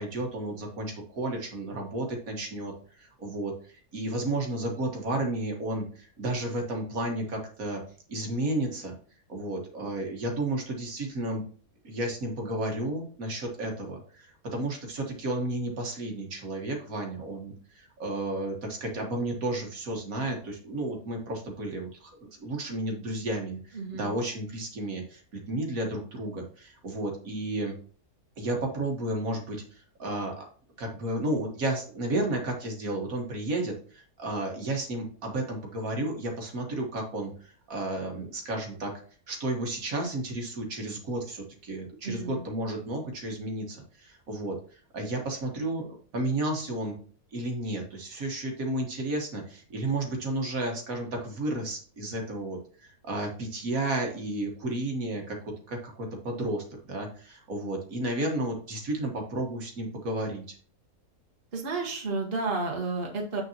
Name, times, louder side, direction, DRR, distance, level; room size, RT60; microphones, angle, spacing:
voice 1, 0.0-2.7 3.0-7.8 8.1-8.9 9.3-11.4 11.8-22.1 22.4-27.7 28.4-30.5 30.8-38.9 39.3-46.9 47.3-60.4, right 1 dB, 65° right, 1 dB, 1.8 m, -32 dB
voice 2, 23.7-24.1 42.0-42.4 61.5-63.4, right 3 dB, 40° right, 0 dB, 1.5 m, -31 dB
7.5 x 6.7 x 2.9 m, 0.43 s
omnidirectional pair, 1.6 m